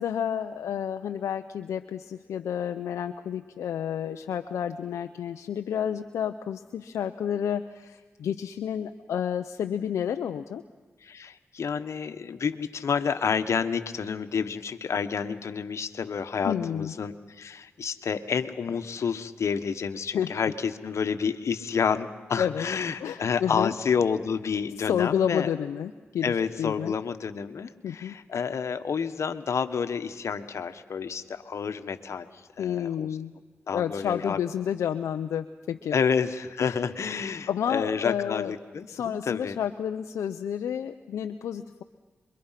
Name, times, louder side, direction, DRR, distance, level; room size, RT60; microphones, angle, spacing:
voice 1, 0.0-10.6 16.4-16.9 20.1-20.3 22.4-22.6 23.0-23.7 24.8-27.0 27.8-28.1 32.6-33.3 33.7-36.0 36.6-36.8 37.5-38.5 38.9-41.8, left 9 dB, 90° left, 7 dB, 0.7 m, -30 dB
voice 2, 11.0-25.5 26.2-32.3 32.6-33.1 33.7-34.4 35.9-39.6, left 6 dB, 75° left, 9 dB, 1.4 m, -29 dB
27.5 x 23.5 x 5.9 m, 1.4 s
supercardioid pair, 40°, 5 cm